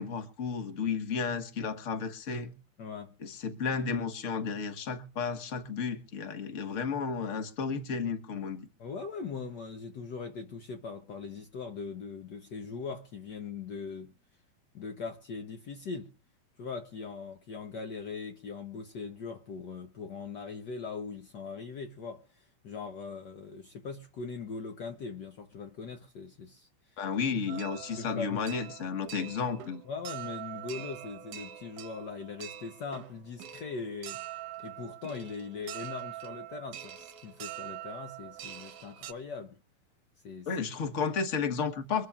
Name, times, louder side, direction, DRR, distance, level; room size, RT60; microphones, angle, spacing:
voice 1, 0.0-2.5 3.2-8.7 27.0-29.8 40.5-42.1, left 5 dB, 50° left, 0.9 m, -33 dB
voice 2, 2.8-3.1 8.8-14.1 14.7-16.1 16.6-27.0 28.0-28.4 29.8-34.2 34.6-39.6 40.2-40.5, left 5 dB, 85° left, 0.9 m, -40 dB
sound 1, 27.5-39.1, right 12 dB, 70° right, 1.8 m, -44 dB
24.5 x 13.0 x 2.4 m
omnidirectional pair, 3.3 m